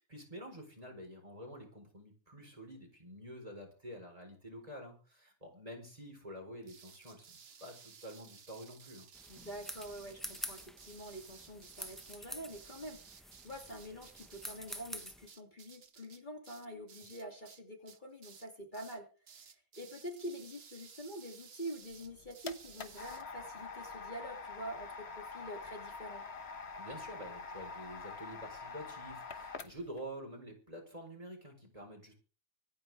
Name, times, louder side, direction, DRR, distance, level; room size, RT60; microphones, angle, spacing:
voice 1, 0.1-7.3 7.6-9.0 26.8-32.1, equal, 25° right, 2 dB, 4.6 m, -48 dB
sound 1, 6.6-17.6 17.9-18.5 18.7-19.0 19.3-23.2, right 7 dB, 50° right, 1.2 m, -57 dB
sound 2, 9.1-15.3, equal, ahead, 1.1 m, -48 dB
voice 2, 9.3-26.2, right 1 dB, 35° left, 1 dB, 2.8 m, -46 dB
sound 3, 21.9-30.0, left 4 dB, 50° left, 1.4 m, -46 dB
25.5 x 9.4 x 3.5 m, 0.36 s
omnidirectional pair, 1.4 m